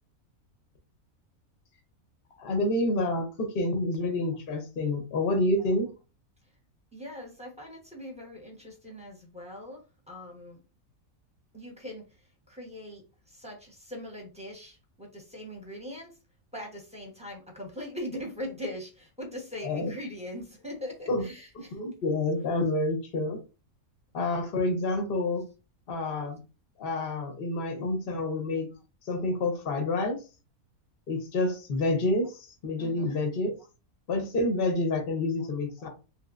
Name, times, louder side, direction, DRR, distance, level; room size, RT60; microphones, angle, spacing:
voice 1, 2.4-5.9 19.6-19.9 21.1-21.3 21.5-23.4 24.1-25.4 25.9-26.4 26.8-28.7 29.1-30.2 31.1-33.5 34.1-35.9, left 2 dB, 45° left, 5 dB, 0.8 m, -28 dB
voice 2, 6.9-9.8 10.1-10.6 11.5-12.0 12.5-13.0 13.4-16.1 16.5-21.5 32.8-33.2, left 1 dB, 5° right, 0 dB, 0.8 m, -40 dB
3.3 x 3.1 x 2.4 m, 0.31 s
omnidirectional pair, 1.5 m